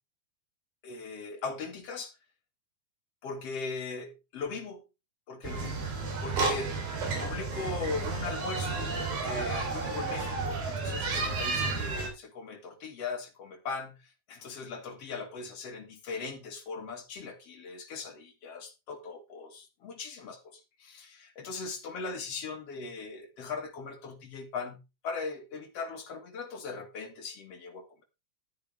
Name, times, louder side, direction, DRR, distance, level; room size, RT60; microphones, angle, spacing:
voice 1, 0.8-2.1 3.2-4.8 5.3-5.9 6.2-6.9 7.2-8.9 9.2-28.0, left 4 dB, 50° left, 2.5 m, -39 dB
sound 1, 5.4-12.1, right 3 dB, 70° right, 5.3 m, -32 dB
12.0 x 9.5 x 3.4 m
omnidirectional pair, 4.3 m